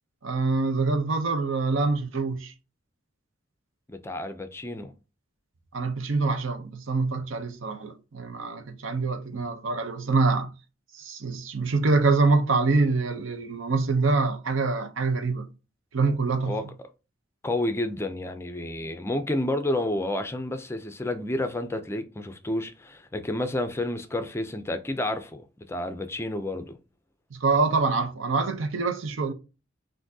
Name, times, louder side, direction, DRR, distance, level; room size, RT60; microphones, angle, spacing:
voice 1, 0.2-2.5 5.7-10.5 10.9-15.5 15.9-16.7 27.3-29.3, right 3 dB, 80° right, 0.7 m, -25 dB
voice 2, 3.9-4.9 16.5-16.6 17.4-26.8, left 1 dB, 15° left, 0.4 m, -30 dB
5.9 x 2.6 x 2.7 m
head